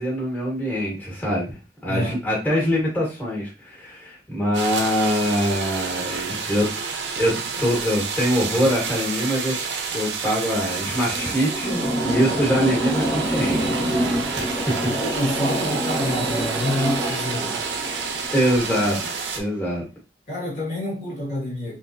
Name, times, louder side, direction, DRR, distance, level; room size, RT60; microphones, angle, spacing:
voice 1, 0.0-1.6 1.8-6.7 7.1-9.6 9.9-13.8 14.3-14.6 18.3-19.0 19.3-19.8, equal, 10° left, 1.4 m, -23 dB
voice 2, 1.9-2.2 14.9-17.6 20.3-21.8, left 1 dB, 45° left, 1.5 m, -28 dB
sound 1, 4.5-19.4, right 5 dB, 90° right, 0.7 m, -29 dB
sound 2, 10.8-19.2, equal, 10° right, 1.1 m, -27 dB
3.6 x 3.0 x 2.7 m
head